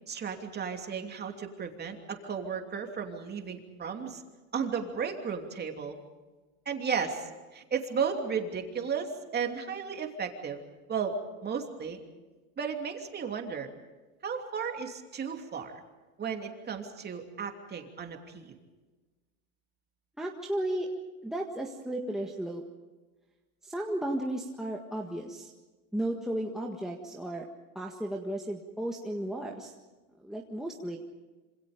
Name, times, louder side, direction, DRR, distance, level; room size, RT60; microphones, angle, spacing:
voice 1, 0.1-4.2 4.5-6.0 6.6-10.6 10.9-12.0 12.6-13.7 14.2-15.8 16.2-18.6, right 6 dB, 20° right, 3 dB, 3.0 m, -34 dB
voice 2, 20.2-20.9 21.2-22.6 23.6-25.5 25.9-27.4 27.7-29.7 30.2-31.0, right 1 dB, ahead, -1 dB, 1.7 m, -34 dB
26.5 x 26.5 x 5.2 m, 1.2 s
supercardioid pair, 130°, 43 cm